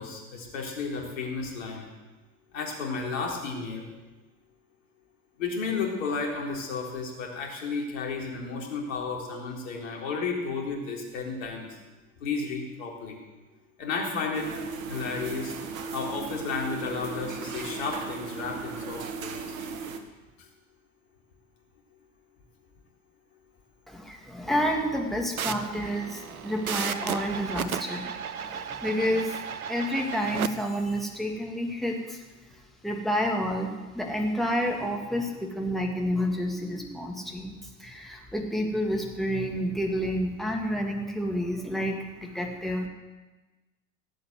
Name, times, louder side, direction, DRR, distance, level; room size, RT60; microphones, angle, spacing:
voice 1, 0.0-1.8 2.5-3.9 5.4-11.7 12.2-13.2 13.8-14.5 14.9-15.5 15.9-19.4, left 4 dB, 65° left, 0 dB, 4.0 m, -32 dB
sound 1, 14.3-20.0, right 4 dB, 65° right, 1.7 m, -36 dB
voice 2, 23.9-29.4 29.7-32.2 32.8-37.5 37.8-42.9, equal, ahead, 0 dB, 2.9 m, -29 dB
sound 2, 25.4-30.5, right 8 dB, 80° right, 0.8 m, -34 dB
17.0 x 8.4 x 7.9 m, 1.2 s
figure-of-eight pair, 80°, 42 cm